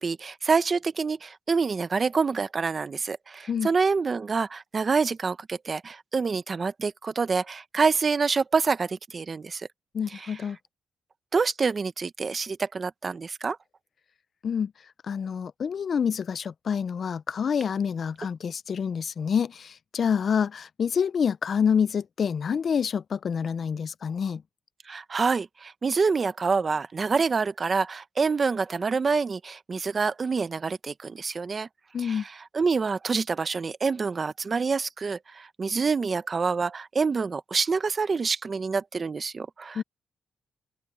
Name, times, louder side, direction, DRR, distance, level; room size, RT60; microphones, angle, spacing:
voice 1, 0.0-9.7 10.1-10.3 11.3-13.6 24.9-31.7 32.0-39.8, right 4 dB, 35° right, 0.9 m, -27 dB
voice 2, 9.9-10.6 14.4-14.7 15.1-24.4 31.9-32.2 39.8-39.9, left 7 dB, 50° left, 0.4 m, -27 dB
open air
cardioid pair, 120°, 0 cm